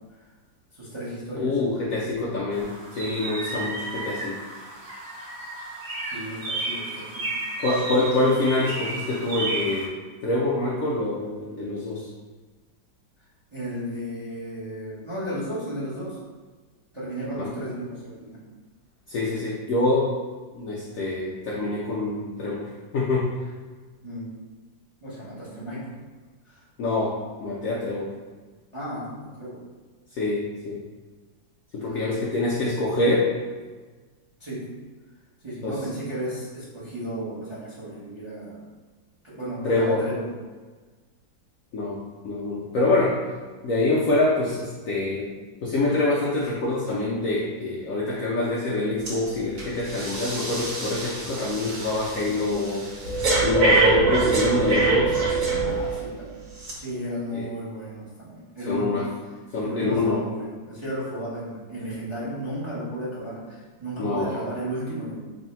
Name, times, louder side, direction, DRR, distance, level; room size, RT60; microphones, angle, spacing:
voice 1, 0.7-1.6 6.0-7.4 13.5-16.2 16.9-18.4 24.0-24.4 25.0-26.0 26.4-26.6 28.7-29.6 31.8-32.6 34.4-34.8 35.4-38.7 39.2-40.3 45.1-45.3 55.6-56.5 56.8-59.1 59.6-65.2, equal, 25° right, -10 dB, 0.6 m, -34 dB
voice 2, 1.3-4.4 7.6-9.9 10.2-12.1 17.4-17.5 19.1-20.1 20.5-23.3 26.8-27.1 27.4-28.1 30.2-30.8 31.7-33.3 35.6-35.8 39.6-40.0 41.7-42.0 42.2-43.2 43.6-45.3 45.6-52.9 53.4-55.2 57.3-57.4 58.7-59.1 59.5-60.2 64.0-64.4, left 2 dB, 90° left, -5 dB, 0.7 m, -25 dB
sound 1, 2.5-9.9, right 2 dB, 75° right, 0.6 m, -33 dB
Breathing, 49.1-49.2 49.6-56.0 56.6-56.7, right 3 dB, 55° right, 1.2 m, -24 dB
3.1 x 2.6 x 4.1 m, 1.4 s
omnidirectional pair, 2.1 m